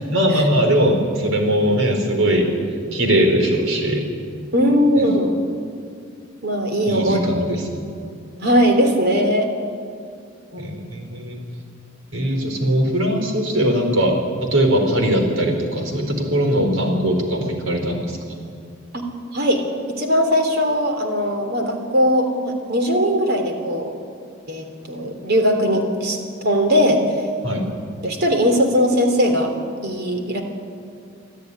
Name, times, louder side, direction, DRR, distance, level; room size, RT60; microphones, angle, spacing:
voice 1, 0.1-2.5 2.9-4.1 4.9-5.1 6.8-7.8 10.6-11.4 12.1-14.2 14.4-18.2 27.4-27.7, equal, 85° right, 4 dB, 4.4 m, -20 dB
voice 2, 4.5-5.3 6.4-7.2 8.4-9.5 10.5-10.8 18.9-19.0 19.3-19.6 20.0-23.9 24.5-27.0 28.0-29.5 29.8-30.4, equal, 50° right, 4 dB, 3.3 m, -19 dB
26.0 x 13.5 x 10.0 m, 2.4 s
head